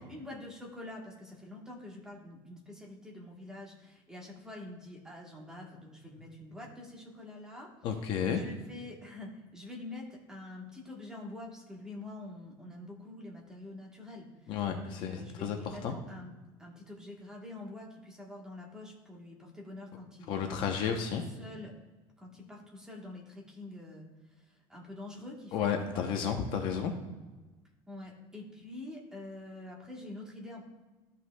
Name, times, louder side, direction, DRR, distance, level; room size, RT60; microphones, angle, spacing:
voice 1, 0.0-7.7 8.3-16.3 16.6-20.5 20.9-21.8 22.2-24.1 24.5-26.0 27.9-30.6, left 2 dB, 5° right, -2 dB, 1.1 m, -46 dB
voice 2, 7.8-8.4 14.5-15.9 20.3-21.2 25.5-26.9, left 7 dB, 45° left, 4 dB, 0.7 m, -32 dB
13.0 x 5.5 x 2.2 m, 1.2 s
cardioid pair, 175°, 11 cm